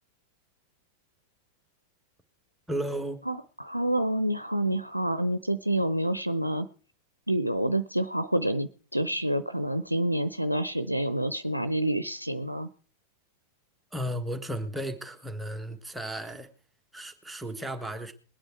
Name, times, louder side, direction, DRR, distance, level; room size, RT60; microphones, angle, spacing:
voice 1, 2.7-3.2 13.9-16.5 16.9-18.1, right 1 dB, 5° right, 1.4 m, -34 dB
voice 2, 3.3-6.7 7.3-12.7, right 1 dB, 90° right, 0.6 m, -28 dB
21.0 x 8.9 x 4.6 m
figure-of-eight pair, 90°, 0 cm